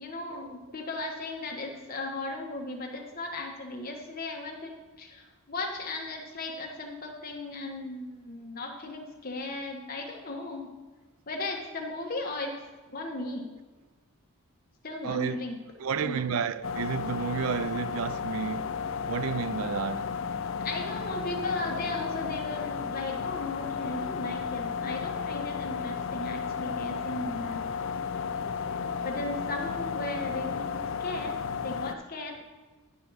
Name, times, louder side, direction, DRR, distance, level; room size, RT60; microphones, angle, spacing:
voice 1, 0.0-10.7 11.3-12.6 12.9-13.5 14.8-15.6 16.0-16.3 20.6-27.6 29.0-31.4 31.6-32.4, left 2 dB, 40° left, 1.3 m, -36 dB
voice 2, 15.0-15.5 15.8-18.7 19.1-20.1, right 7 dB, 70° right, 0.4 m, -31 dB
sound 1, 16.6-31.9, left 6 dB, 60° left, 0.4 m, -33 dB
10.5 x 5.2 x 4.6 m
head